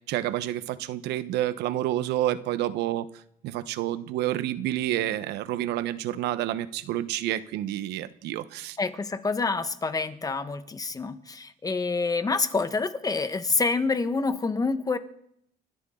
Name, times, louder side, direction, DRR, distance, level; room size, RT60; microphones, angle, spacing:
voice 1, 0.1-3.1 3.4-8.8, right 13 dB, 85° right, 13 dB, 1.0 m, -29 dB
voice 2, 8.8-15.0, left 4 dB, 20° left, 11 dB, 1.3 m, -27 dB
30.0 x 12.5 x 3.9 m, 0.74 s
cardioid pair, 110°, 17 cm